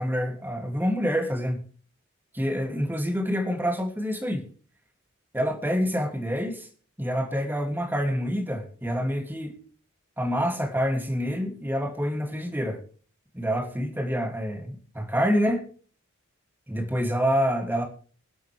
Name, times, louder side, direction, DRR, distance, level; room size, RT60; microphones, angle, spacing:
voice 1, 0.0-1.6 2.3-4.5 5.3-6.7 7.0-9.6 10.2-12.8 13.3-15.7 16.7-17.8, equal, 10° right, 3 dB, 2.7 m, -27 dB
24.0 x 8.2 x 3.5 m, 0.40 s
head